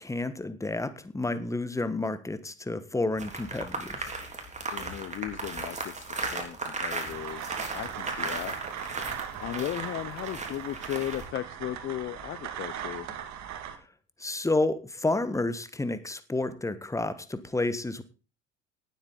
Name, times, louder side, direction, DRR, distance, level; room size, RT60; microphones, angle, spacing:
voice 1, 0.0-4.0 14.2-18.0, left 2 dB, 10° left, 13 dB, 1.4 m, -30 dB
sound 1, 3.2-11.3, right 3 dB, 20° right, 3.7 m, -36 dB
voice 2, 4.7-8.6 9.4-13.1, left 12 dB, 35° left, 15 dB, 0.7 m, -36 dB
sound 2, 7.1-13.8, right 9 dB, 50° right, 2.2 m, -39 dB
17.5 x 8.2 x 4.0 m, 0.34 s
figure-of-eight pair, 60°, 37 cm